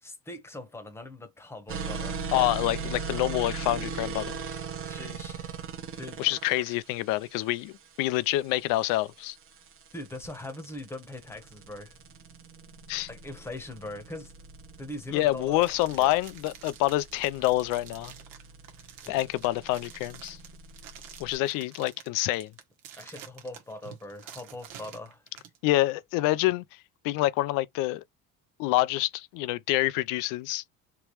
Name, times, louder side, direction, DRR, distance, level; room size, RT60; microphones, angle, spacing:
voice 1, 0.0-2.3 4.8-5.7 6.0-6.3 9.9-12.0 13.1-14.3 14.8-16.1 19.0-19.2 23.0-25.2, left 2 dB, 10° left, 1.0 m, -41 dB
sound 1, 1.7-21.3, right 5 dB, 40° right, 0.9 m, -40 dB
voice 2, 2.3-4.4 6.2-9.4 12.9-13.1 15.1-18.1 19.1-20.4 21.2-22.5 25.6-26.6 27.0-28.0 28.6-30.6, left 16 dB, 80° left, 0.5 m, -27 dB
sound 2, 15.5-25.6, right 9 dB, 80° right, 1.3 m, -49 dB
3.4 x 3.0 x 3.0 m
cardioid pair, 135°, 32 cm